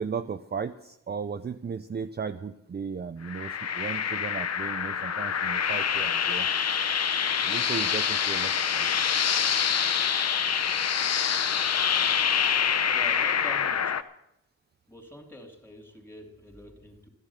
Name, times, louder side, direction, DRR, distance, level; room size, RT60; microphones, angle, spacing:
voice 1, 0.0-6.5 7.5-8.9, right 6 dB, 30° right, 0.5 m, -35 dB
sound 1, 3.2-14.0, left 7 dB, 50° left, 0.7 m, -26 dB
voice 2, 12.9-14.0 14.9-17.1, left 1 dB, 5° left, 3.1 m, -45 dB
13.0 x 10.5 x 7.3 m
cardioid pair, 90°, 33 cm